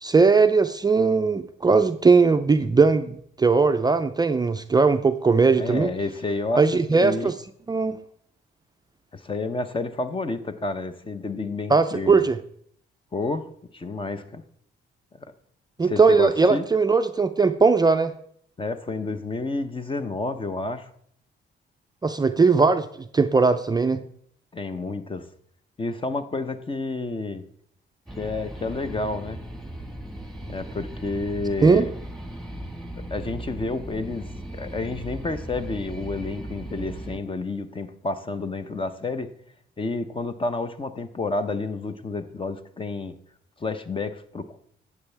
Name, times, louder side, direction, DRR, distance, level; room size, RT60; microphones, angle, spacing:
voice 1, 0.0-5.9 6.6-7.3 7.7-8.0 11.7-12.4 15.8-18.1 22.0-22.9 23.1-24.0 31.6-31.9, right 4 dB, 20° right, 8 dB, 0.5 m, -19 dB
voice 2, 5.6-7.3 9.1-12.2 13.1-13.4 13.7-14.4 15.8-16.6 18.6-20.9 24.5-25.3 25.8-27.4 28.2-29.4 30.5-31.9 33.1-39.3 39.8-43.1 43.6-44.6, left 3 dB, 25° left, 10 dB, 0.8 m, -30 dB
sound 1, 28.1-37.2, right 1 dB, ahead, 1.5 m, -37 dB
12.5 x 8.2 x 3.4 m, 0.65 s
cardioid pair, 90°, 20 cm